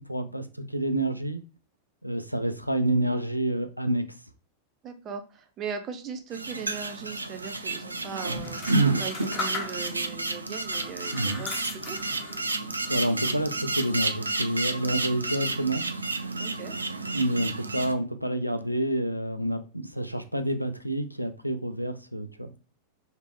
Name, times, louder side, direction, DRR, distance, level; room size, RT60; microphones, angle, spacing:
voice 1, 0.1-1.4 2.0-4.0 11.1-11.4 12.9-15.8 17.1-22.5, right 1 dB, 90° left, 8 dB, 0.4 m, -28 dB
voice 2, 4.8-8.6 9.0-12.0 16.3-16.8, right 6 dB, 30° right, 6 dB, 0.6 m, -38 dB
sound 1, 6.3-17.9, right 3 dB, 80° right, 0.3 m, -30 dB
sound 2, 8.4-10.1 10.7-12.5 12.9-13.5, left 3 dB, 30° left, 1.3 m, -38 dB
3.0 x 2.8 x 3.1 m, 0.34 s
figure-of-eight pair, 90°, 0 cm